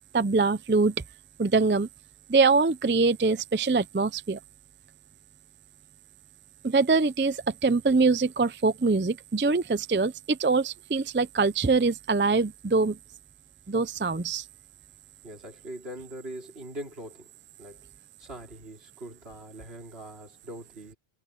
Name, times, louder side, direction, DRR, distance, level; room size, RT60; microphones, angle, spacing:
voice 1, 0.1-0.9 1.4-1.9 2.3-4.4 6.6-13.0 13.7-14.4, right 4 dB, 20° right, 0.3 m, -24 dB
voice 2, 15.2-17.3 17.6-17.9 18.2-21.0, right 1 dB, 60° right, 4.3 m, -42 dB
omnidirectional pair, 1.2 m